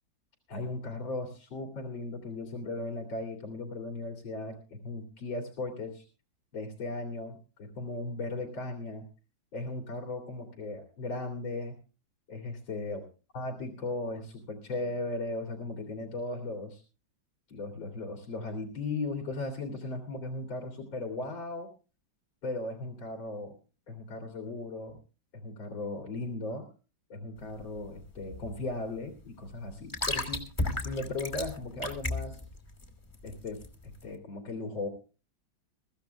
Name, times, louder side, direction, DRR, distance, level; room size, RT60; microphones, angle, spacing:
voice 1, 0.5-6.0 6.5-9.0 9.5-11.8 12.3-13.0 13.3-16.8 17.5-21.7 22.4-23.5 23.9-25.0 25.3-26.7 27.1-32.4 33.2-33.6 34.0-34.9, left 2 dB, 85° left, 1 dB, 3.4 m, -37 dB
sound 1, 27.4-34.1, left 2 dB, 10° left, 2.3 m, -36 dB
23.0 x 15.0 x 2.2 m, 0.35 s
omnidirectional pair, 2.1 m